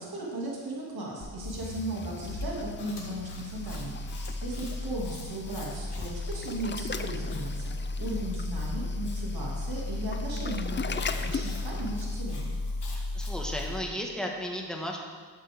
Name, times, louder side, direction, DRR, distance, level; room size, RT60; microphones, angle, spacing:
voice 1, 0.0-7.7 8.0-12.5, right 1 dB, 60° right, -4 dB, 2.3 m, -36 dB
sound 1, 1.2-13.9, left 2 dB, 45° left, 1.1 m, -35 dB
Waves surf, 1.7-12.2, left 5 dB, 30° left, 0.4 m, -40 dB
Chewing mastication, 2.8-9.2 10.9-13.7, left 3 dB, 75° left, 2.0 m, -49 dB
voice 2, 12.9-15.0, equal, ahead, 0 dB, 1.4 m, -34 dB
12.0 x 7.5 x 3.5 m, 1.5 s
wide cardioid pair, 100°, 41 cm